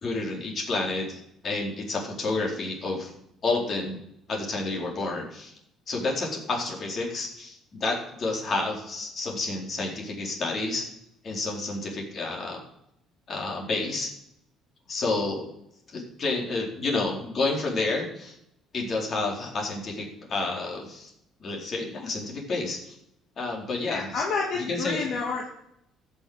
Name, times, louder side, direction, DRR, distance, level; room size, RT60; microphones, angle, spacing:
voice 1, 0.0-3.1 3.4-4.0 4.3-5.5 5.9-10.9 11.2-12.6 13.3-14.1 14.9-15.5 15.9-18.3 18.7-21.1 21.4-23.0 23.4-24.2 24.7-25.0, left 3 dB, 45° left, -1 dB, 4.3 m, -30 dB
voice 2, 23.9-25.5, left 4 dB, 65° left, -1 dB, 2.0 m, -29 dB
13.5 x 6.6 x 8.0 m, 0.79 s
cardioid pair, 100°, 0 cm